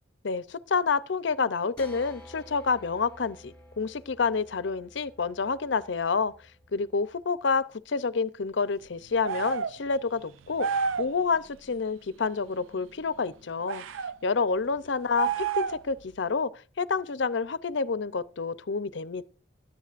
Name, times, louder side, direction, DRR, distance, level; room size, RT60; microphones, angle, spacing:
voice 1, 0.2-6.3 6.7-13.8 14.2-19.3, left 5 dB, 65° left, 0.5 m, -28 dB
sound 1, 1.8-7.2, equal, 5° left, 2.8 m, -52 dB
sound 2, 9.2-9.8 10.6-11.1 13.7-14.1 15.1-15.9, right 6 dB, 80° right, 0.4 m, -29 dB
21.0 x 9.9 x 2.5 m
head